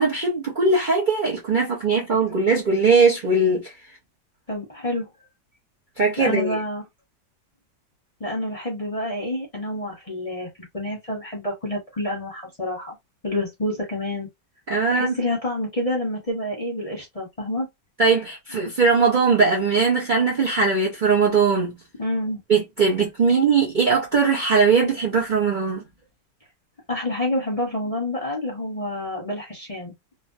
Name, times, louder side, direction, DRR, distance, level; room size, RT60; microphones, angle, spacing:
voice 1, 0.0-3.7 6.0-6.6 14.7-15.1 18.0-21.7 22.5-25.8, right 4 dB, 75° right, 0.4 m, -20 dB
voice 2, 4.5-5.1 6.2-6.8 8.2-13.0 13.2-14.3 14.9-17.7 22.0-22.4 26.9-29.9, left 1 dB, 30° left, 0.7 m, -28 dB
3.2 x 2.1 x 2.6 m
omnidirectional pair, 2.0 m